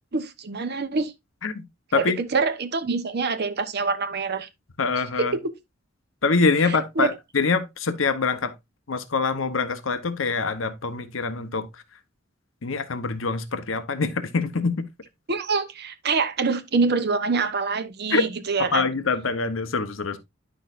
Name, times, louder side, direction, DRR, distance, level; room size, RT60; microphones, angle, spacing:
voice 1, 0.1-1.1 1.9-4.5 5.2-5.5 6.6-7.1 15.3-18.9, right 4 dB, 55° right, 0.9 m, -25 dB
voice 2, 4.8-5.3 6.2-8.5 8.9-11.7 12.6-14.8 18.1-18.2 18.6-20.2, left 4 dB, 75° left, 0.9 m, -24 dB
10.5 x 6.2 x 2.5 m
head